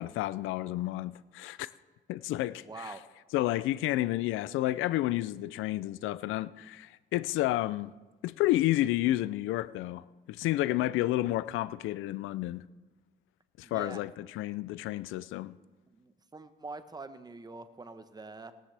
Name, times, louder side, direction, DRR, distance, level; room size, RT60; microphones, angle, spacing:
voice 1, 0.0-1.7 2.1-2.9 3.3-7.9 8.2-12.6 13.6-15.5, left 15 dB, 90° left, 0.4 m, -31 dB
voice 2, 2.6-3.0 13.6-14.1 15.9-18.5, right 3 dB, 20° right, 1.0 m, -45 dB
18.0 x 13.5 x 3.4 m
cardioid pair, 90°, 20 cm